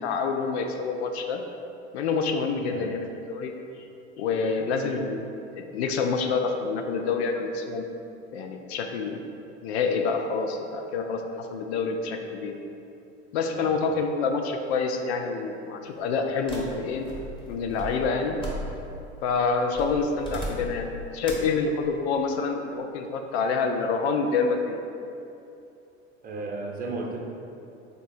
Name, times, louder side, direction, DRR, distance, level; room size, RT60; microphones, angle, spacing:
voice 1, 0.0-1.4 1.9-3.9 4.2-5.2 5.6-7.9 8.3-9.2 9.6-12.6 13.3-17.1 17.5-18.4 19.2-24.8, left 4 dB, 65° left, 4 dB, 0.5 m, -27 dB
voice 2, 13.5-14.0 26.2-27.2, right 3 dB, 25° right, 0 dB, 0.7 m, -34 dB
sound 1, 16.5-19.1 19.7-20.9 21.2-21.6, equal, 15° left, 1.0 m, -37 dB
3.7 x 3.5 x 4.1 m, 2.8 s
figure-of-eight pair, 75°, 36 cm